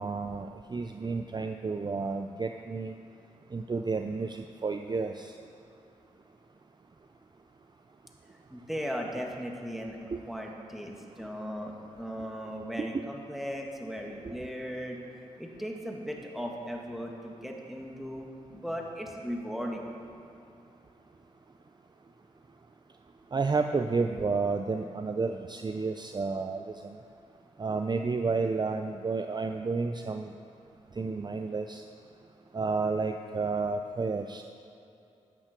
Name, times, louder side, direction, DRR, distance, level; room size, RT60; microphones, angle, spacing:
voice 1, 0.0-2.9 3.5-5.4 10.1-10.2 12.8-12.9 14.2-14.3 23.3-27.0 27.6-30.3 31.0-31.8 32.5-34.4, right 4 dB, 30° right, 6 dB, 0.6 m, -31 dB
voice 2, 8.5-15.0 15.4-19.8, equal, ahead, 0 dB, 2.2 m, -37 dB
13.5 x 8.7 x 4.6 m, 2.7 s
supercardioid pair, 40°, 14 cm